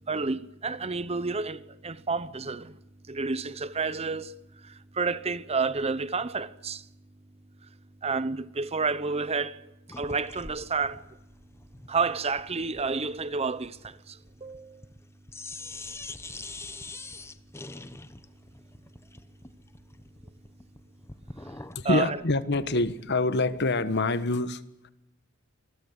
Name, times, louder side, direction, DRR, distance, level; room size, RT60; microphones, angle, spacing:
voice 1, 0.1-2.8 3.1-6.9 8.0-9.6 9.9-11.0 11.9-14.8 21.8-22.2, right 4 dB, 30° right, 0.8 m, -30 dB
sound 1, 9.9-15.0 15.3-21.9, left 3 dB, 10° left, 0.9 m, -44 dB
voice 2, 21.7-24.9, left 2 dB, 50° left, 1.3 m, -26 dB
26.0 x 20.5 x 8.2 m
head